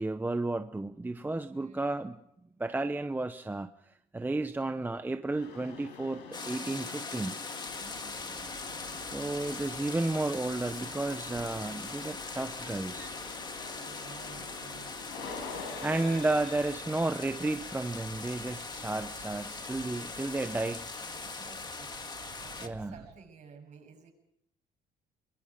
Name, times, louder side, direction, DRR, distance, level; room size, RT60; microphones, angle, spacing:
voice 1, 0.0-2.2 2.6-3.7 4.1-7.3 9.1-13.2 15.8-20.8 22.6-22.9, right 2 dB, 10° right, 8 dB, 0.8 m, -32 dB
voice 2, 1.5-2.1 7.7-9.6 13.7-15.7 16.1-16.4 20.7-24.1, right 5 dB, 45° right, 2 dB, 7.9 m, -55 dB
sound 1, 5.3-20.2, left 4 dB, 90° left, 5.9 m, -47 dB
sound 2, 6.3-22.7, left 4 dB, 25° left, 2.1 m, -41 dB
sound 3, 7.6-23.1, right 8 dB, 65° right, 3.0 m, -55 dB
23.0 x 23.0 x 5.1 m, 0.77 s
cardioid pair, 110°, 17 cm